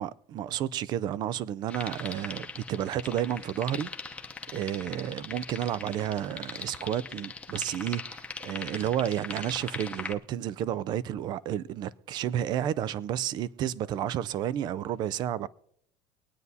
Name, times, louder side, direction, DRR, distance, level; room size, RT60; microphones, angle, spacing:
voice 1, 0.0-3.9 4.5-15.5, right 11 dB, 45° right, 0.4 m, -31 dB
sound 1, 1.7-10.1, left 4 dB, 10° left, 0.8 m, -40 dB
24.0 x 9.4 x 2.7 m
cardioid pair, 145°, 10 cm